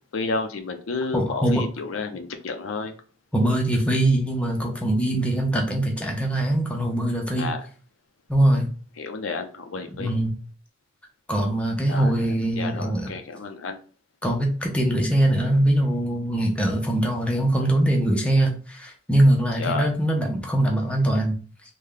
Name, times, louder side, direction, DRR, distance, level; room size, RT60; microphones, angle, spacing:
voice 1, 0.1-2.9 7.4-7.7 9.0-10.1 11.9-12.1 12.5-13.8 19.6-19.8, left 4 dB, 85° left, 5 dB, 0.6 m, -31 dB
voice 2, 1.1-1.6 3.3-7.5 8.3-8.7 10.0-10.3 11.3-13.1 14.2-21.4, right 1 dB, 5° left, 1 dB, 0.6 m, -22 dB
3.3 x 2.2 x 3.7 m, 0.38 s
head